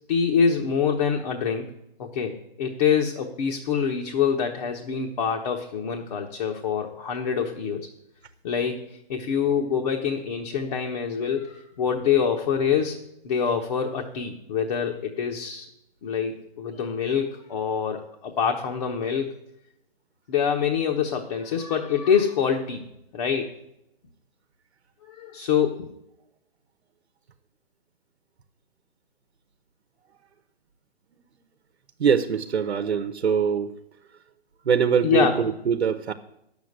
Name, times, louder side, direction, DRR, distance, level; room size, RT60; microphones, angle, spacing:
voice 1, 0.1-1.7 2.0-7.9 8.4-15.7 16.0-19.3 20.3-22.9 23.1-23.5 25.0-25.9 35.0-35.4, left 7 dB, 40° left, 2 dB, 1.2 m, -25 dB
voice 2, 32.0-33.8 34.6-36.1, right 7 dB, 80° right, 8 dB, 1.0 m, -23 dB
10.0 x 7.2 x 8.0 m, 0.82 s
hypercardioid pair, 150°, 32 cm